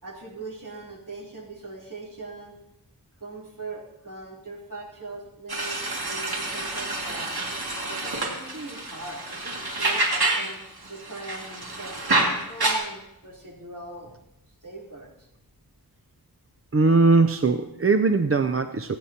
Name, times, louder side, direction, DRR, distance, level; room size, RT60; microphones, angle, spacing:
voice 1, 0.0-2.5 3.2-7.3 7.8-10.6 10.9-14.1 14.6-15.3, right 2 dB, 55° right, -3 dB, 3.4 m, -40 dB
sound 1, 5.5-10.6 10.8-12.7, right 2 dB, 75° right, 2.2 m, -28 dB
voice 2, 16.7-19.0, right 3 dB, 35° right, 8 dB, 0.6 m, -20 dB
27.5 x 9.3 x 2.8 m, 0.87 s
wide cardioid pair, 70°, 38 cm